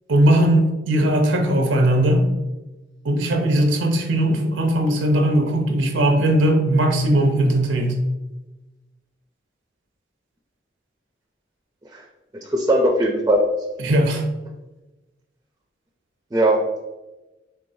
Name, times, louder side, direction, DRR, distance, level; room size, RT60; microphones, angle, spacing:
voice 1, 0.1-2.3 3.0-7.9 13.8-14.2, right 1 dB, 90° right, 3 dB, 0.6 m, -18 dB
voice 2, 12.3-13.4 16.3-16.6, right 1 dB, 20° right, 0 dB, 0.4 m, -19 dB
4.6 x 3.4 x 2.6 m, 1.1 s
head